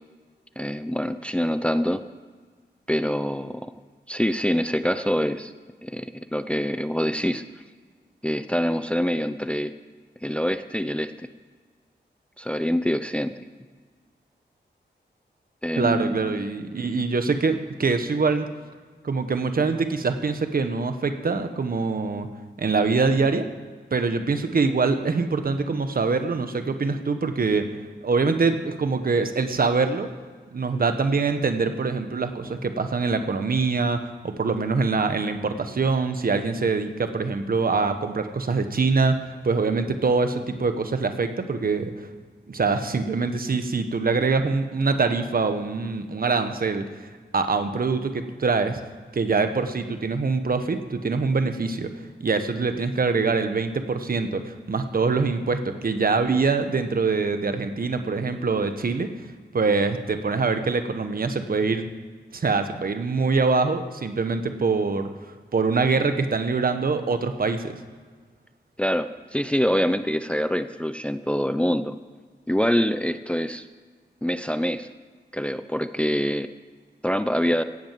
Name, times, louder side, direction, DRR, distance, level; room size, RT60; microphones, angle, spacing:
voice 1, 0.6-2.0 2.9-3.7 4.1-5.5 5.8-7.4 8.2-9.7 10.2-11.1 12.4-13.3 15.6-16.4 68.8-72.0 72.5-73.7 74.2-74.9 75.3-76.5 77.0-77.6, equal, 5° left, 11 dB, 0.6 m, -25 dB
voice 2, 15.8-18.5 19.0-22.3 22.6-23.5 23.9-27.7 28.0-30.1 30.5-42.1 42.5-46.9 47.3-48.8 49.1-51.9 52.2-59.1 59.5-61.9 62.3-65.1 65.5-67.8, right 4 dB, 55° right, 8 dB, 1.4 m, -24 dB
17.0 x 8.8 x 7.7 m, 1.5 s
wide cardioid pair, 95°, 18 cm